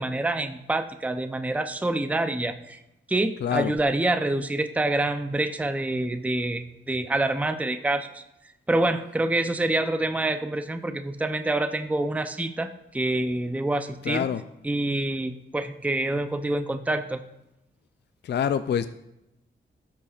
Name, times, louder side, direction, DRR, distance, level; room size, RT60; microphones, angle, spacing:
voice 1, 0.0-2.8 3.1-8.2 8.7-14.3 14.6-17.2, right 2 dB, 5° right, 8 dB, 0.6 m, -26 dB
voice 2, 3.4-3.7 14.0-14.4 18.2-18.9, left 8 dB, 55° left, 12 dB, 0.4 m, -25 dB
13.0 x 7.0 x 2.4 m, 0.88 s
cardioid pair, 65°, 21 cm